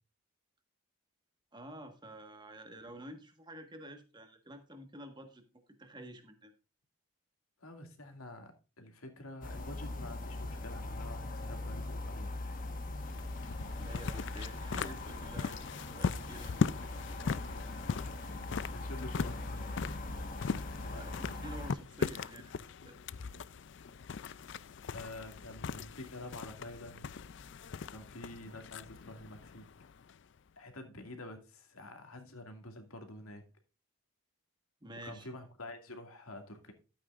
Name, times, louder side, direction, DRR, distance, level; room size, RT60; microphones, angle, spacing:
voice 1, 1.5-6.5 13.8-15.6 15.9-16.6 20.3-22.5 22.8-23.0 34.8-35.3, right 1 dB, 20° right, 6 dB, 1.4 m, -50 dB
voice 2, 7.6-8.5 8.8-12.3 15.6-15.7 18.7-19.7 20.8-21.2 24.0-24.4 24.9-27.1 27.9-29.7 30.6-33.4 35.0-36.7, left 1 dB, 85° left, 5 dB, 2.3 m, -48 dB
sound 1, 9.4-21.7, left 2 dB, 40° left, 1.3 m, -41 dB
sound 2, 12.8-30.4, left 5 dB, 55° left, 0.4 m, -39 dB
12.5 x 8.8 x 2.5 m, 0.32 s
head